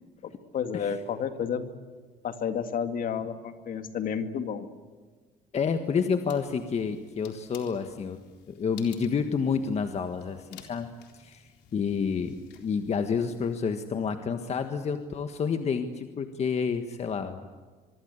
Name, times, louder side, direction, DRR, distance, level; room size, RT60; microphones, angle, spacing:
voice 1, 0.2-1.7 2.2-4.7, left 7 dB, 55° left, 8 dB, 2.2 m, -31 dB
voice 2, 5.5-8.2 8.5-10.9 11.1-17.5, left 6 dB, 40° left, 7 dB, 1.6 m, -29 dB
sound 1, 6.3-13.6, left 8 dB, 80° left, 3.9 m, -54 dB
24.5 x 24.0 x 8.3 m, 1.4 s
cardioid pair, 110°, 17 cm